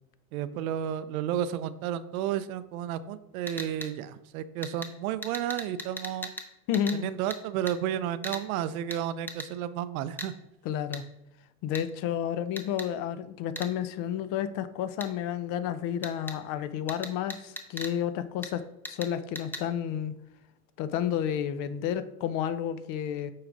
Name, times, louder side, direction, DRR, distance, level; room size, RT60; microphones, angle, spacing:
voice 1, 0.3-6.3 6.9-10.3, right 10 dB, 80° right, 14 dB, 0.6 m, -32 dB
sound 1, 3.5-3.9 4.6-4.9 5.2-6.5 6.7-7.0 7.3-7.4 7.7-7.8 8.2-8.4 8.9-9.0 9.3-9.5 10.2-10.3 10.9-11.0 11.7-11.8 12.6-12.9 13.6-13.7 15.0-15.1 16.0-16.4 16.9-17.9 18.4-18.5 18.8-19.1 19.3-19.6, left 1 dB, 5° left, 0.6 m, -38 dB
voice 2, 6.7-7.1 10.6-11.0 11.6-18.6 18.9-20.1 20.8-23.3, left 9 dB, 50° left, 13 dB, 0.6 m, -31 dB
8.5 x 4.7 x 2.5 m, 0.88 s
supercardioid pair, 110°, 42 cm